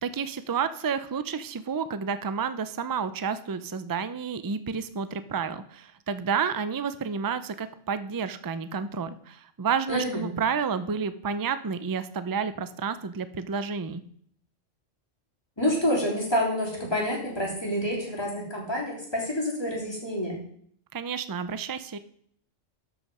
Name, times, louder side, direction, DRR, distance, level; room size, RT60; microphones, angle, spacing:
voice 1, 0.0-14.0 20.9-22.0, right 6 dB, 30° right, 12 dB, 0.3 m, -30 dB
voice 2, 9.9-10.2 15.6-20.4, equal, 20° left, -3 dB, 3.4 m, -28 dB
12.5 x 5.8 x 5.5 m, 0.63 s
omnidirectional pair, 1.2 m